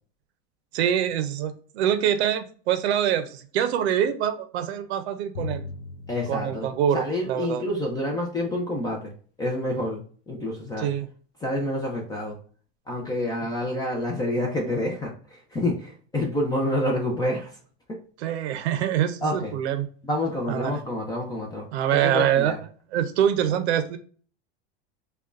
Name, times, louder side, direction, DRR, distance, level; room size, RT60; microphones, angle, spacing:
voice 1, 0.7-5.7 6.3-7.6 10.8-11.1 18.2-19.9 20.5-20.8 21.7-22.5 22.9-24.0, right 10 dB, 85° right, 10 dB, 0.6 m, -25 dB
Drum, 5.3-7.7, left 3 dB, 60° left, 1.2 m, -39 dB
voice 2, 6.1-9.1 9.4-10.9 11.4-12.4 12.9-17.5 17.9-18.0 19.2-19.5 20.0-22.6, left 1 dB, 10° left, -1 dB, 0.5 m, -28 dB
5.0 x 2.3 x 2.5 m, 0.44 s
supercardioid pair, 145°, 32 cm